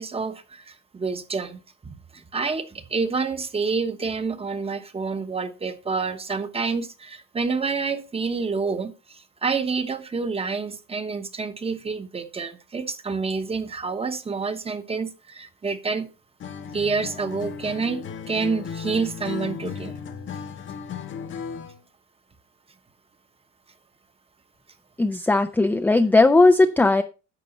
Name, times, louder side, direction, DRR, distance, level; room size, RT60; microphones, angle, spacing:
voice 1, 0.0-16.1 16.7-19.9, right 4 dB, 20° right, 1.0 m, -28 dB
Acoustic guitar, 16.4-21.8, left 6 dB, 40° left, 1.0 m, -35 dB
voice 2, 25.0-27.0, left 2 dB, 5° left, 0.4 m, -17 dB
11.0 x 6.7 x 4.0 m
cardioid pair, 125°, 29 cm